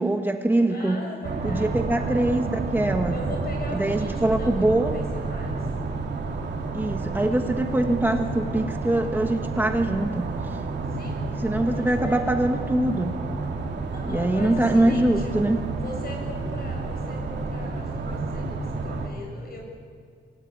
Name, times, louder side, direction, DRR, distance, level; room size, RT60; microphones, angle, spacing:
voice 1, 0.0-1.0 1.4-3.1 3.7-5.0 6.7-10.6 11.4-13.1 14.1-15.6, right 1 dB, 10° right, 4 dB, 1.2 m, -23 dB
voice 2, 0.7-2.2 3.1-5.7 10.9-11.2 11.7-12.2 13.8-15.3 15.7-19.6, left 2 dB, 55° left, 1 dB, 6.6 m, -40 dB
sound 1, 1.2-19.1, right 3 dB, 75° right, 2.8 m, -30 dB
25.0 x 17.5 x 9.7 m, 2.1 s
wide cardioid pair, 175°, 18 cm